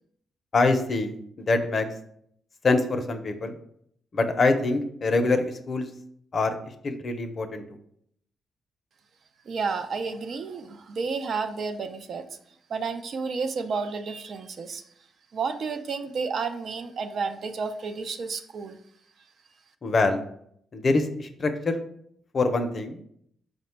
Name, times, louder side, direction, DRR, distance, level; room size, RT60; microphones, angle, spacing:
voice 1, 0.5-1.8 2.6-3.5 4.1-5.9 6.3-6.6 6.8-7.6 19.8-20.2 20.7-21.8 22.3-23.0, left 3 dB, 45° left, 7 dB, 0.5 m, -24 dB
voice 2, 9.5-12.2 12.7-14.8 15.3-18.8, right 5 dB, 60° right, 8 dB, 0.4 m, -31 dB
4.9 x 2.1 x 4.4 m, 0.68 s
cardioid pair, 95°, 0 cm